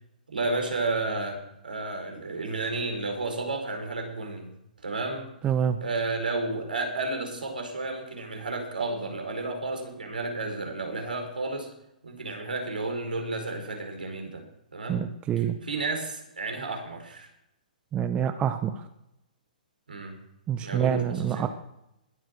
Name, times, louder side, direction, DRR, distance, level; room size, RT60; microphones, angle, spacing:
voice 1, 0.3-4.5 4.8-5.3 5.8-11.7 12.0-14.4 14.7-15.0 15.6-17.3 19.9-20.2 20.6-21.5, right 3 dB, 80° right, 4 dB, 4.6 m, -32 dB
voice 2, 5.4-5.8 14.9-15.6 17.9-18.8 20.5-21.5, right 9 dB, 20° right, 9 dB, 0.9 m, -26 dB
21.0 x 7.7 x 6.5 m, 0.84 s
figure-of-eight pair, 120°, 5 cm